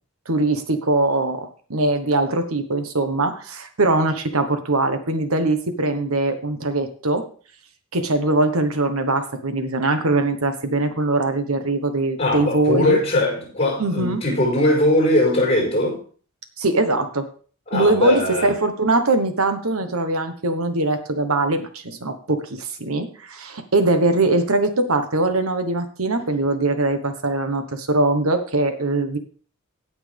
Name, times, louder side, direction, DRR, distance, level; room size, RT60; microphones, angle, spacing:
voice 1, 0.3-7.3 7.9-13.0 13.8-14.2 16.6-17.3 17.7-29.2, right 2 dB, 75° right, 1.3 m, -21 dB
voice 2, 12.2-16.0 17.7-18.5, left 1 dB, 30° left, 4.8 m, -20 dB
17.0 x 6.1 x 3.6 m
head